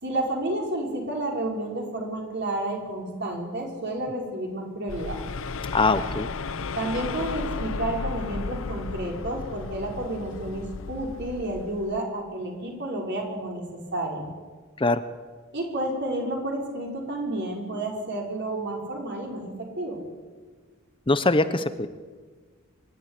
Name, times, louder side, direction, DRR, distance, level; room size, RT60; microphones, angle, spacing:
voice 1, 0.0-5.2 6.8-14.3 15.5-20.0, right 1 dB, 55° right, 0 dB, 5.6 m, -31 dB
sound 1, 4.9-12.0, left 4 dB, 65° left, 0.8 m, -34 dB
voice 2, 5.7-6.3 14.8-15.0 21.1-21.9, left 2 dB, 25° left, 12 dB, 0.8 m, -22 dB
25.0 x 12.5 x 10.0 m, 1.5 s
head